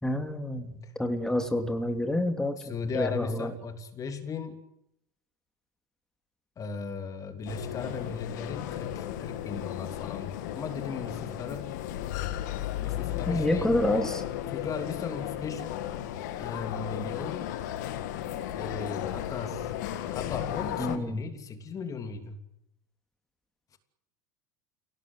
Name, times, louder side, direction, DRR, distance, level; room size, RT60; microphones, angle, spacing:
voice 1, 0.0-3.5 13.3-14.2 20.8-21.2, left 1 dB, 5° left, 6 dB, 3.0 m, -28 dB
voice 2, 2.6-4.6 6.6-11.7 12.8-13.7 14.5-15.8 16.4-17.5 18.5-19.7 20.1-22.4, left 5 dB, 35° left, 7 dB, 3.0 m, -37 dB
sound 1, 7.5-21.0, left 12 dB, 70° left, 1.9 m, -34 dB
29.5 x 18.0 x 8.1 m, 0.83 s
hypercardioid pair, 80°, 10 cm